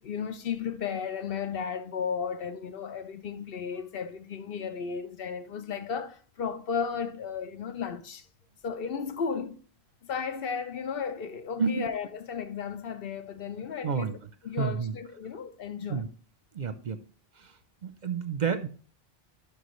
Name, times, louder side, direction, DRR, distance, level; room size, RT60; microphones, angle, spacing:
voice 1, 0.0-8.3 8.6-9.6 10.0-14.2 14.4-16.0, left 6 dB, 65° left, 0.8 m, -34 dB
voice 2, 13.8-14.2 14.6-14.9 15.9-16.1 16.5-17.0 17.4-18.7, right 6 dB, 50° right, 0.7 m, -30 dB
11.5 x 5.1 x 3.1 m
omnidirectional pair, 1.1 m